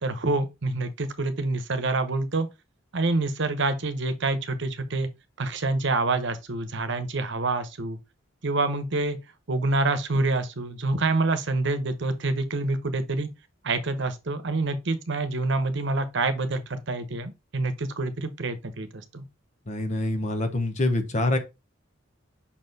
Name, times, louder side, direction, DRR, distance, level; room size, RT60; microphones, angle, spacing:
voice 1, 0.0-2.5 2.9-5.1 5.4-8.0 8.4-9.2 9.5-13.3 13.6-19.2, right 2 dB, 65° right, 0.9 m, -27 dB
voice 2, 19.7-21.4, left 2 dB, 40° left, 1.0 m, -25 dB
5.8 x 4.4 x 4.0 m
head